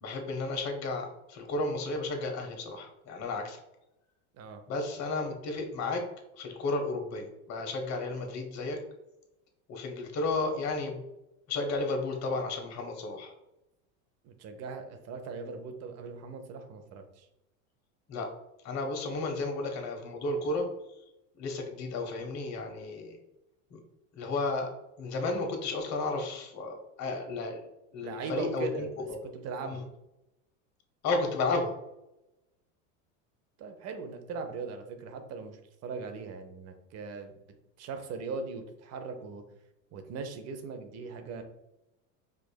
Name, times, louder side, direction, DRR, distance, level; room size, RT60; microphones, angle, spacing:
voice 1, 0.0-3.6 4.7-6.0 6.4-8.8 9.7-11.0 11.5-13.3 18.1-18.3 18.6-20.6 21.4-23.2 23.7-23.8 24.2-24.7 25.0-27.6 27.9-28.9 29.6-29.8 31.0-31.7, left 3 dB, 45° left, 3 dB, 0.9 m, -33 dB
voice 2, 14.2-17.3 28.0-29.1 29.3-29.8 33.6-37.3 37.8-39.4 39.9-41.4, right 4 dB, 40° right, 6 dB, 0.6 m, -39 dB
4.9 x 2.5 x 2.2 m, 0.89 s
supercardioid pair, 110°, 39 cm